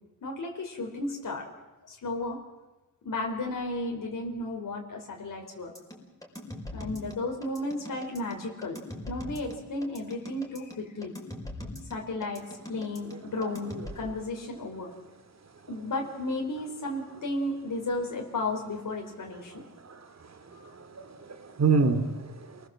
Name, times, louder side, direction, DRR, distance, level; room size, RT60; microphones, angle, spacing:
voice 1, 0.2-1.5 1.9-2.4 3.0-5.7 6.7-11.1 11.9-12.4 12.7-14.9 15.7-19.7 20.6-20.7, left 2 dB, 65° left, 1 dB, 4.3 m, -34 dB
sound 1, 5.8-13.9, left 1 dB, 10° left, 5.2 m, -41 dB
voice 2, 20.6-22.6, right 4 dB, 50° right, 9 dB, 2.7 m, -27 dB
28.0 x 20.5 x 7.7 m, 1.1 s
wide cardioid pair, 105°, 35 cm